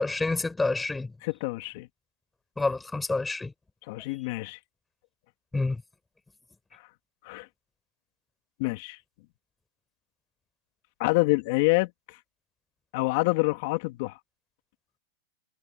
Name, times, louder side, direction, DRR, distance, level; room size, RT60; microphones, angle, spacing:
voice 1, 0.0-1.1 2.6-3.5 5.5-5.8, left 3 dB, 10° left, 5.6 m, -28 dB
voice 2, 1.2-1.9 3.9-4.6 7.2-7.5 8.6-9.0 11.0-12.2 12.9-14.2, left 24 dB, 60° left, 2.6 m, -27 dB
hypercardioid pair, 125°, 0 cm